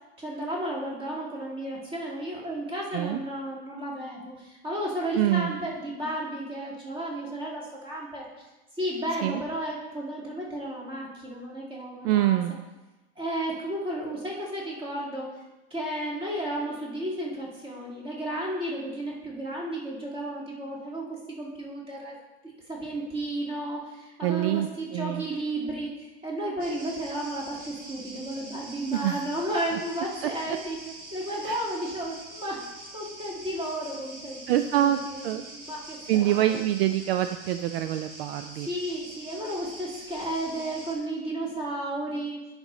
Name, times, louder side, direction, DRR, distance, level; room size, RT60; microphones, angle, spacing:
voice 1, 0.2-8.5 8.8-12.6 13.2-15.4 15.7-22.1 22.7-30.8 31.1-32.7 32.9-35.2 35.5-36.6 38.6-42.5, right 1 dB, 15° right, -3 dB, 1.9 m, -33 dB
voice 2, 5.2-5.5 9.2-9.4 12.0-12.5 24.2-25.2 28.9-29.3 30.2-30.3 31.4-31.6 34.5-35.4 36.1-38.7, right 13 dB, 65° right, 9 dB, 0.4 m, -25 dB
sound 1, 26.6-40.9, right 1 dB, 40° right, 1.8 m, -44 dB
11.0 x 5.2 x 3.1 m, 1.1 s
supercardioid pair, 140°, 33 cm